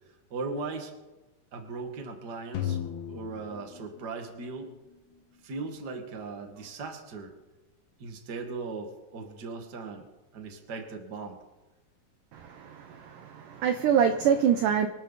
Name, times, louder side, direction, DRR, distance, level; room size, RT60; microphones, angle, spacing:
voice 1, 0.3-0.9 1.5-2.8 3.1-4.7 5.4-7.3 8.0-10.1 10.3-11.4, right 4 dB, 35° right, 1.8 m, -38 dB
sound 1, 2.5-4.7, left 10 dB, 80° left, 3.5 m, -35 dB
voice 2, 12.3-14.9, right 8 dB, 75° right, 2.0 m, -25 dB
25.5 x 12.5 x 4.2 m
omnidirectional pair, 4.5 m